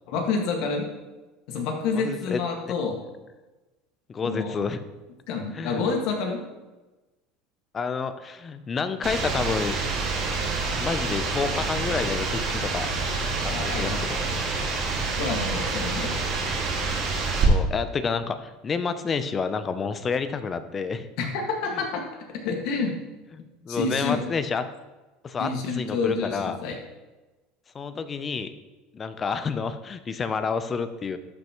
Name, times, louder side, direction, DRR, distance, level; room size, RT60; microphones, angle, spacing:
voice 1, 0.1-0.9 1.5-3.0 4.2-4.6 5.3-6.4 13.5-14.4 15.2-16.1 21.2-22.0 22.4-22.9 23.7-24.2 25.4-26.8, left 4 dB, 60° left, 1 dB, 1.8 m, -28 dB
voice 2, 1.9-2.7 4.1-4.8 5.5-5.8 7.7-9.8 10.8-12.9 13.4-14.2 17.5-21.1 21.7-21.8 22.7-22.9 23.3-24.6 25.2-26.6 27.7-28.5 28.9-31.2, left 5 dB, 25° left, 11 dB, 0.5 m, -29 dB
sound 1, 9.0-17.5, right 4 dB, 45° right, 2.0 m, -27 dB
11.5 x 5.7 x 3.0 m, 1.1 s
supercardioid pair, 135°, 0 cm